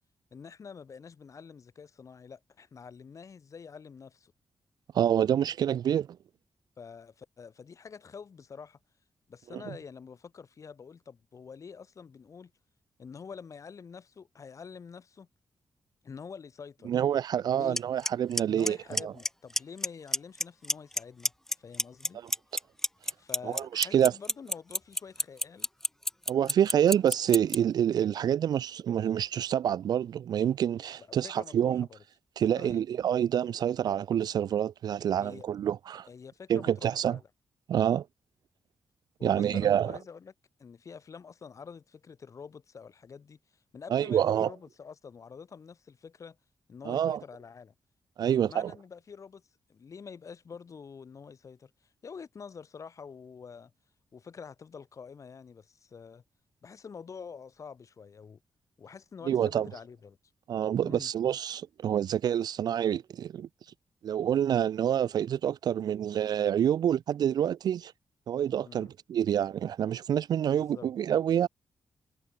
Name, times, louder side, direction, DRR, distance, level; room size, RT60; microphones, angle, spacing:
voice 1, 0.3-4.3 6.8-8.8 9.3-12.5 13.0-15.3 16.0-16.9 17.5-17.8 18.4-21.3 21.6-22.2 23.2-25.7 31.1-32.0 32.6-32.8 35.2-35.5 36.1-37.3 37.7-37.9 39.2-40.3 40.6-46.4 46.7-47.7 48.2-51.7 52.0-53.7 54.1-56.2 56.6-58.4 58.8-60.2 60.8-61.1 68.6-68.9 70.7-70.9, left 6 dB, 50° left, 2.6 m, -47 dB
voice 2, 4.9-6.1 9.5-9.6 16.9-19.1 22.2-22.3 23.4-24.1 26.3-31.9 32.4-36.1 36.5-37.2 37.7-38.0 39.2-39.9 43.9-44.5 46.8-47.2 48.2-48.7 59.3-59.7 60.5-63.5 64.0-67.9 68.3-71.5, right 9 dB, 70° right, 0.4 m, -27 dB
Clock, 17.8-17.9 18.1-18.4 18.7-19.3 19.6-19.9 20.1-21.0 21.3-27.6, left 1 dB, 5° left, 0.4 m, -26 dB
wide cardioid pair, 120°, 7 cm